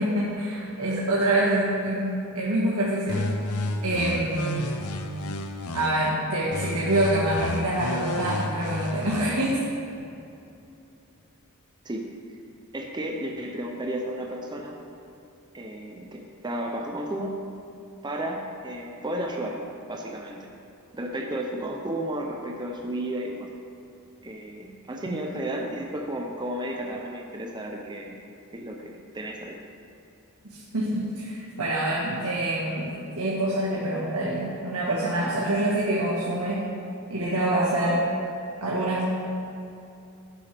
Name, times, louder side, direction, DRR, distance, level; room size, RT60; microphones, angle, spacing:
voice 1, 0.0-3.2 3.8-4.7 5.7-9.6 30.4-36.6 37.1-38.1 38.6-39.1, right 1 dB, 90° right, -6 dB, 1.6 m, -26 dB
sound 1, 3.1-6.1 6.5-9.5, left 2 dB, 85° left, 0.8 m, -32 dB
voice 2, 12.7-14.8 15.5-17.4 18.0-20.5 20.9-23.5 24.2-28.1 28.5-29.6, right 1 dB, 20° right, 1 dB, 0.7 m, -33 dB
12.0 x 11.0 x 3.5 m, 2.7 s
head